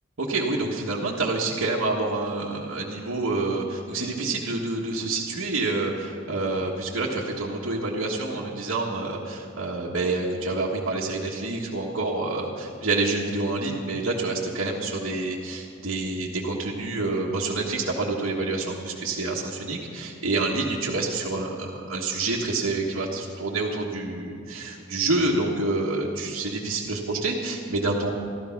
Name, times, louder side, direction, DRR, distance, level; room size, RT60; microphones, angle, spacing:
voice 1, 0.2-28.2, right 2 dB, 65° right, -6 dB, 1.5 m, -27 dB
13.5 x 13.5 x 5.9 m, 2.3 s
head